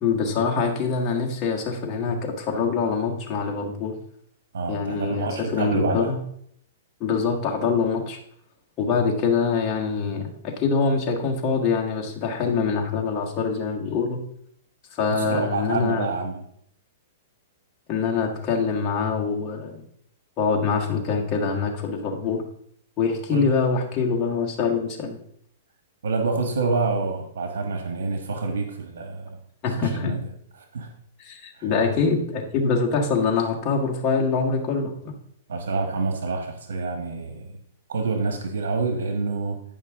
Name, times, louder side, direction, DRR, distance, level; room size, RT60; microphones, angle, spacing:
voice 1, 0.0-3.9 4.7-6.2 7.0-8.2 8.8-14.2 14.9-16.1 17.9-19.8 20.4-22.4 23.0-25.2 29.6-30.1 31.2-35.1, left 5 dB, 25° left, 0 dB, 1.5 m, -24 dB
voice 2, 4.5-6.1 15.2-16.5 23.3-23.5 26.0-29.4 29.8-30.2 30.7-30.9 31.6-31.7 35.5-37.6 37.9-39.6, right 4 dB, 85° right, 4 dB, 1.4 m, -27 dB
9.4 x 5.5 x 3.6 m, 0.68 s
hypercardioid pair, 150°, 0 cm